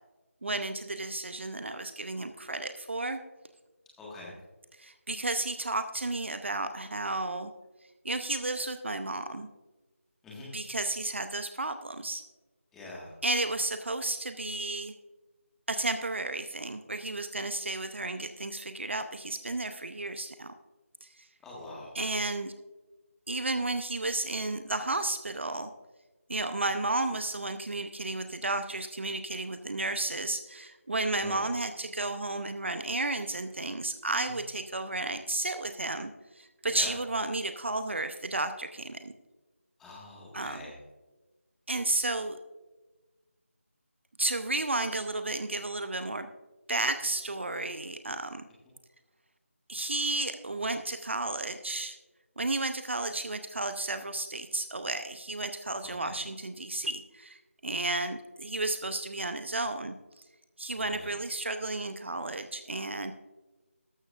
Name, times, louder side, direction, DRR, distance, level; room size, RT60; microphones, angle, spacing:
voice 1, 0.4-3.2 4.8-7.5 8.0-9.5 10.4-12.3 13.2-14.9 15.7-20.5 21.0-21.3 21.9-22.5 23.3-25.7 26.3-39.1 40.3-40.6 41.7-42.4 44.2-46.3 46.7-48.5 49.7-52.0 52.4-60.2 60.6-63.1, right 2 dB, 55° right, 9 dB, 0.7 m, -33 dB
voice 2, 4.0-4.3 10.2-10.5 12.7-13.1 21.4-21.9 31.1-31.4 34.2-34.3 36.7-36.9 39.8-40.7 56.0-56.1 60.8-61.1, left 2 dB, 5° left, -5 dB, 1.7 m, -44 dB
13.0 x 13.0 x 2.5 m, 1.2 s
figure-of-eight pair, 165°, 8 cm